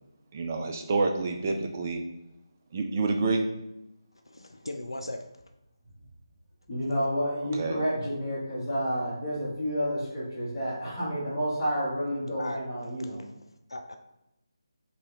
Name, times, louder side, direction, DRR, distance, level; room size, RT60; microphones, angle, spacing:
voice 1, 0.3-2.0 2.7-3.4 7.5-7.8, right 3 dB, 30° right, 3 dB, 0.4 m, -28 dB
voice 2, 4.3-5.3 7.8-8.1 12.4-12.6 13.7-14.0, left 1 dB, 80° left, 5 dB, 0.4 m, -37 dB
voice 3, 6.7-13.2, equal, 15° left, -12 dB, 1.2 m, -30 dB
3.1 x 2.7 x 3.8 m, 0.90 s
figure-of-eight pair, 155°, 3 cm